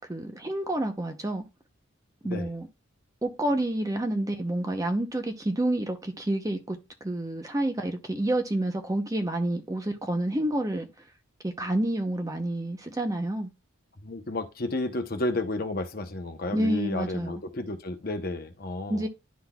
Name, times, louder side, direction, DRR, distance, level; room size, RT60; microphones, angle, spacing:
voice 1, 0.1-1.4 2.2-2.7 3.2-10.9 11.4-13.5 16.5-17.4 18.9-19.1, right 1 dB, 15° right, 0.7 m, -29 dB
voice 2, 14.0-19.1, left 2 dB, 45° left, 0.8 m, -32 dB
11.0 x 3.9 x 2.3 m
head